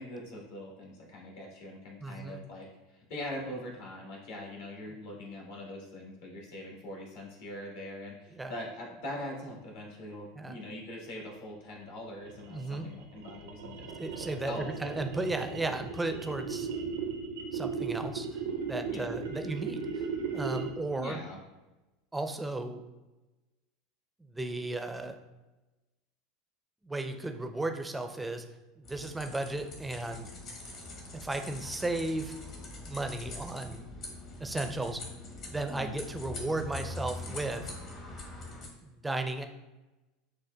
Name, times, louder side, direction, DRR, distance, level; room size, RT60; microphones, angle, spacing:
voice 1, 0.0-14.7 18.9-19.3 21.0-21.4 35.7-35.9, left 1 dB, 70° left, -2 dB, 1.3 m, -42 dB
voice 2, 2.0-2.4 4.9-5.0 8.3-8.5 10.4-10.6 12.5-12.9 13.7-16.7 17.5-20.0 20.3-21.2 22.1-22.8 24.2-25.2 26.8-28.5 28.8-30.3 31.1-32.3 32.9-33.8 34.4-35.1 35.5-37.7 38.8-39.5, right 2 dB, 10° right, 6 dB, 0.4 m, -35 dB
sound 1, 12.2-20.9, right 5 dB, 80° right, 0.5 m, -37 dB
sound 2, 28.8-38.7, left 2 dB, 50° left, 1.1 m, -43 dB
6.4 x 2.2 x 2.2 m, 1.1 s
hypercardioid pair, 85°, 0 cm